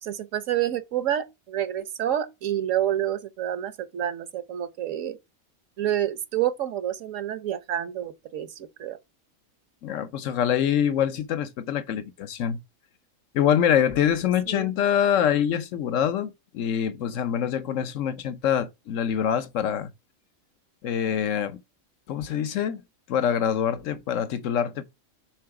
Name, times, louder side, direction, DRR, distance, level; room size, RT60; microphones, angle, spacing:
voice 1, 0.0-5.2 5.8-9.0 14.5-14.7, right 11 dB, 70° right, 1.2 m, -28 dB
voice 2, 9.8-12.6 13.3-19.9 20.8-21.6 22.1-22.8 23.1-24.8, left 9 dB, 70° left, 1.1 m, -25 dB
7.7 x 3.9 x 4.7 m
omnidirectional pair, 1.4 m